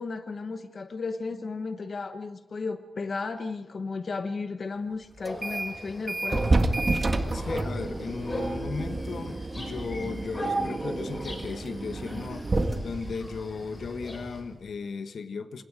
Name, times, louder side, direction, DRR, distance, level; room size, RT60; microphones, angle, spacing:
voice 1, 0.0-6.5, left 4 dB, 45° left, 8 dB, 1.0 m, -34 dB
sound 1, 5.2-14.4, right 1 dB, 25° left, 5.0 m, -39 dB
sound 2, 5.3-5.8 6.1-14.5, right 2 dB, 30° right, 1.7 m, -30 dB
voice 2, 7.3-12.5 12.8-15.6, left 5 dB, 75° left, 9 dB, 1.4 m, -36 dB
28.5 x 26.5 x 5.0 m, 1.0 s
wide cardioid pair, 175°, 0 cm